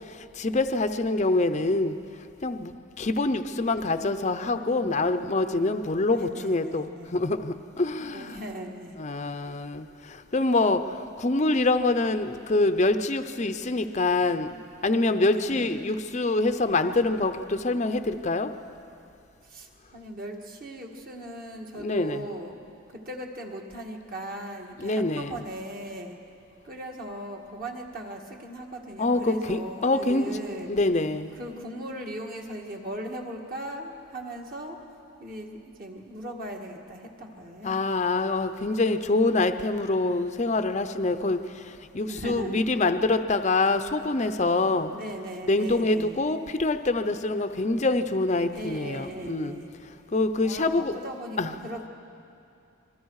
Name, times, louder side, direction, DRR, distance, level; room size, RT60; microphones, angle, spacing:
voice 1, 0.4-2.0 2.4-8.3 9.0-18.5 21.8-22.2 24.8-25.3 29.0-30.3 30.7-31.3 37.6-44.9 45.5-49.6 50.1-51.0 51.4-51.5, left 2 dB, 35° left, 9 dB, 0.6 m, -25 dB
voice 2, 3.9-5.5 6.0-7.2 8.1-9.0 15.1-15.8 19.4-22.6 22.9-26.2 26.6-30.7 31.3-34.8 35.2-37.8 42.1-42.8 44.9-46.2 48.5-49.7 50.4-51.9, right 1 dB, 40° right, 1 dB, 1.8 m, -38 dB
26.0 x 22.0 x 4.8 m, 2.7 s
head